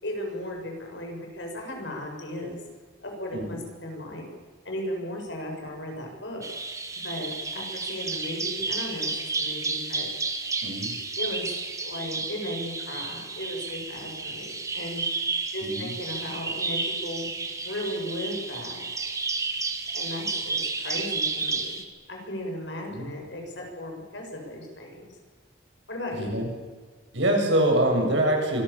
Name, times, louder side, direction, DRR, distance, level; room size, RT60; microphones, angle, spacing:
voice 1, 0.0-2.6 3.0-4.2 4.6-6.5 7.0-10.1 11.2-11.5 11.8-15.0 15.5-17.3 17.6-18.8 19.9-21.8 22.1-25.1 25.9-26.4, left 1 dB, 65° left, 1 dB, 7.1 m, -36 dB
Bird vocalization bird call bird song, 6.4-21.8, right 3 dB, 15° right, 1.9 m, -31 dB
voice 2, 10.6-10.9 15.6-15.9 22.9-23.1 26.1-26.5 27.1-28.6, right 1 dB, 70° right, 1 dB, 7.4 m, -24 dB
25.5 x 21.0 x 7.2 m, 1.5 s
head